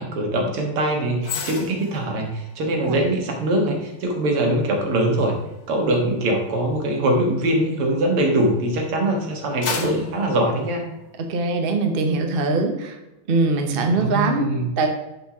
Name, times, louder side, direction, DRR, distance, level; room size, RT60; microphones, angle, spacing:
voice 1, 0.0-5.4 5.7-10.8 14.0-14.7, right 1 dB, 85° right, 1 dB, 2.5 m, -22 dB
sound 1, 1.2-8.6 9.1-11.4 11.8-12.0, left 5 dB, 60° left, 1.7 m, -37 dB
voice 2, 11.2-13.0 13.3-14.4 14.8-14.9, right 3 dB, 45° right, 4 dB, 0.7 m, -22 dB
7.0 x 4.5 x 6.0 m, 0.96 s
omnidirectional pair, 2.4 m